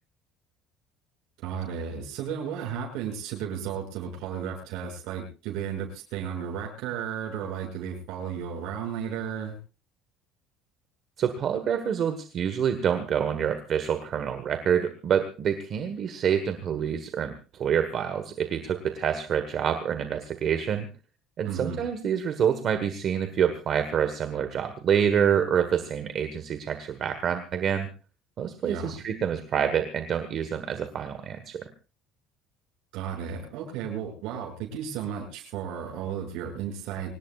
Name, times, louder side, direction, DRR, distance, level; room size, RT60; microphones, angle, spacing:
voice 1, 1.4-9.6 21.5-21.8 28.6-29.0 32.9-37.1, right 8 dB, 60° right, 0 dB, 7.0 m, -34 dB
voice 2, 11.2-20.9 21.4-27.9 28.4-31.7, right 8 dB, 35° right, 9 dB, 1.4 m, -27 dB
25.0 x 19.5 x 2.5 m, 0.34 s
cardioid pair, 180°, 0 cm